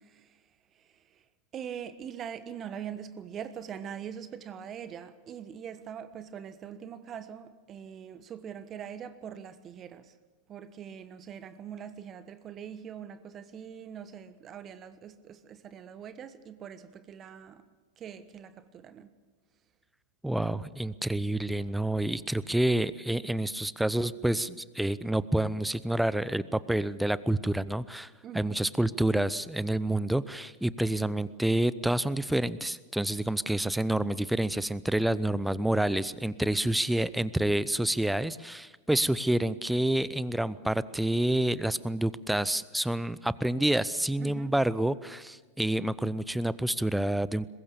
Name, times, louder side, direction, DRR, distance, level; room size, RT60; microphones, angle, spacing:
voice 1, 1.5-10.0 10.5-17.6 18.0-19.1 28.2-28.6 44.2-44.5, right 8 dB, 30° right, 1.2 m, -42 dB
voice 2, 20.2-47.5, right 1 dB, 5° right, 0.7 m, -28 dB
22.5 x 21.0 x 7.0 m
figure-of-eight pair, 90°, 0 cm